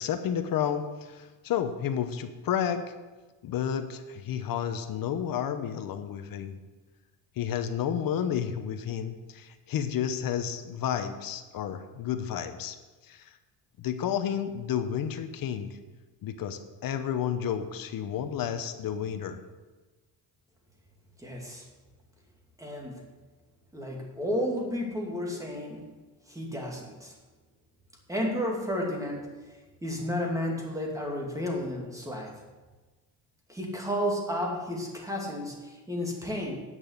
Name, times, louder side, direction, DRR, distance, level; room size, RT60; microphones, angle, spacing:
voice 1, 0.0-2.8 3.4-6.6 7.4-12.8 13.1-13.2 13.8-15.8 16.2-19.4, left 9 dB, 55° left, 9 dB, 1.0 m, -31 dB
voice 2, 21.2-21.6 22.6-23.0 23.7-25.8 26.3-27.1 28.1-29.3 29.8-32.3 33.5-36.6, equal, 10° right, 0 dB, 2.5 m, -32 dB
9.1 x 6.2 x 8.1 m, 1.2 s
cardioid pair, 115°, 42 cm